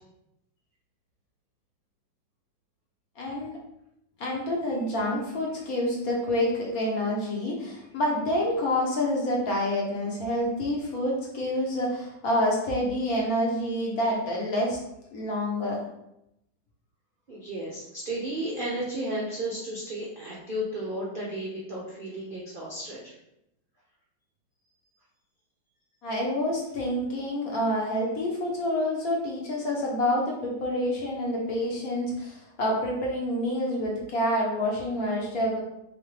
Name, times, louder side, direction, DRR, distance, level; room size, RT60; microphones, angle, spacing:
voice 1, 3.2-3.6 4.2-14.8 15.1-15.8 26.0-35.6, left 1 dB, 55° left, -2 dB, 1.2 m, -28 dB
voice 2, 17.3-23.2, right 1 dB, 70° right, -5 dB, 0.5 m, -33 dB
3.7 x 3.5 x 3.3 m, 0.83 s
omnidirectional pair, 2.1 m